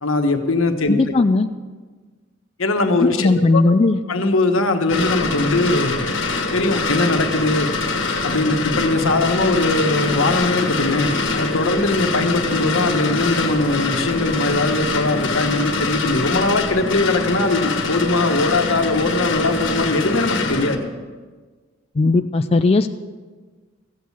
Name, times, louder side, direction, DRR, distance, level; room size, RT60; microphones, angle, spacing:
voice 1, 0.0-1.2 2.6-3.7 4.1-6.0 6.5-7.7 8.2-20.8, left 2 dB, 85° left, 5 dB, 1.3 m, -20 dB
voice 2, 0.9-1.5 3.0-4.0 22.0-22.9, left 3 dB, 30° left, 8 dB, 0.4 m, -17 dB
sound 1, 4.9-20.8, left 3 dB, 65° left, 1.5 m, -24 dB
15.0 x 8.4 x 7.1 m, 1.4 s
head